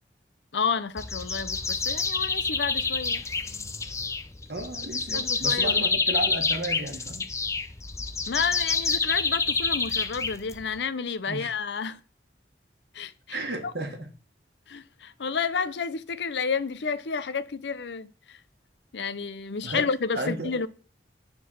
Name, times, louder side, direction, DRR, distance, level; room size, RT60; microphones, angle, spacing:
voice 1, 0.5-3.2 5.1-5.8 8.3-12.0 12.9-13.4 14.7-18.1 18.9-20.7, left 5 dB, 75° left, 0.6 m, -30 dB
sound 1, 1.0-10.8, left 4 dB, 15° left, 0.5 m, -28 dB
voice 2, 4.5-7.3 11.3-11.5 13.3-14.1 19.6-19.9 20.1-20.6, right 1 dB, 65° right, 1.5 m, -33 dB
9.3 x 3.9 x 6.2 m
head